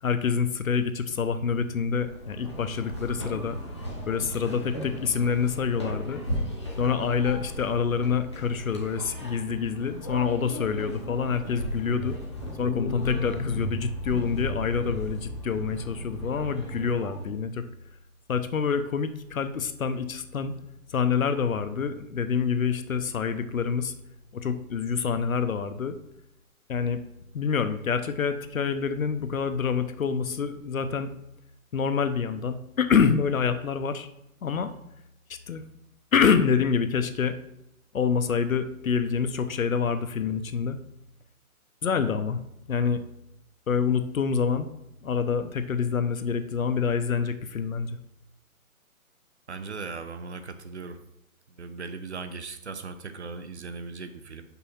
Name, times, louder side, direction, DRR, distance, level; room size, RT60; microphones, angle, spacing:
voice 1, 0.0-3.6 4.1-6.2 6.8-12.2 12.6-17.6 18.3-20.5 20.9-23.9 24.3-26.0 26.7-27.0 27.3-31.1 31.7-34.1 34.4-34.7 35.5-35.6 36.1-37.4 37.9-40.8 41.8-42.4 42.7-43.0 43.7-44.7 45.0-48.0, left 6 dB, 70° left, 10 dB, 0.8 m, -26 dB
sound 1, 1.9-17.3, equal, 20° left, 0.7 m, -37 dB
sound 2, 11.9-16.6, left 3 dB, 40° left, 1.1 m, -34 dB
voice 2, 49.5-51.0 51.6-54.4, right 4 dB, 50° right, 10 dB, 0.6 m, -38 dB
5.9 x 5.5 x 4.3 m, 0.82 s
hypercardioid pair, 170°, 43 cm